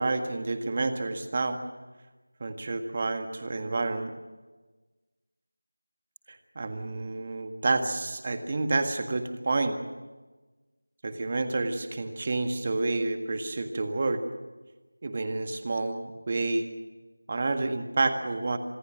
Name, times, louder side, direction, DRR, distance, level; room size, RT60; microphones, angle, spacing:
voice 1, 0.0-1.6 2.4-4.1 6.3-9.8 11.0-14.2 15.0-16.7 17.3-18.6, right 3 dB, 30° right, 8 dB, 1.8 m, -29 dB
26.0 x 20.0 x 6.4 m, 1.2 s
figure-of-eight pair, 170°, 0 cm